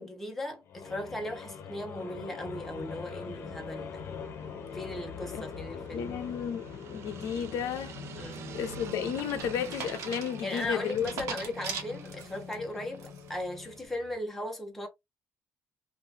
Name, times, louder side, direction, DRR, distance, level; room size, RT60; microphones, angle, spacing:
voice 1, 0.0-4.1 4.7-6.1 8.2-8.5 10.4-14.9, left 1 dB, 5° left, 0.9 m, -37 dB
sound 1, 0.7-13.9, left 6 dB, 55° left, 0.8 m, -43 dB
sound 2, 2.6-14.2, right 9 dB, 55° right, 0.4 m, -49 dB
voice 2, 5.9-6.6 6.9-7.9 8.5-11.1, left 8 dB, 85° left, 0.6 m, -33 dB
sound 3, 8.3-12.5 13.0-13.4, right 6 dB, 80° right, 1.0 m, -40 dB
2.8 x 2.5 x 3.3 m
cardioid pair, 155°, 5 cm